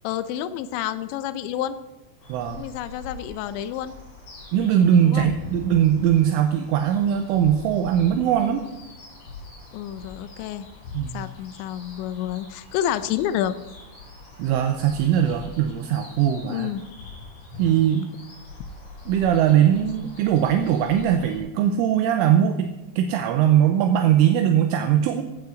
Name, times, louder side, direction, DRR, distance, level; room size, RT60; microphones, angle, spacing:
voice 1, 0.0-1.8 2.5-3.9 5.0-5.3 9.7-10.7 11.1-13.6 16.5-16.8, left 11 dB, 85° left, 12 dB, 2.6 m, -29 dB
sound 1, 2.2-21.4, left 3 dB, 60° left, 7.8 m, -43 dB
voice 2, 2.3-2.6 4.5-8.6 10.9-11.2 14.4-16.7 17.6-18.1 19.1-25.2, right 9 dB, 80° right, 5 dB, 3.2 m, -20 dB
15.5 x 14.5 x 3.9 m, 1.0 s
omnidirectional pair, 5.9 m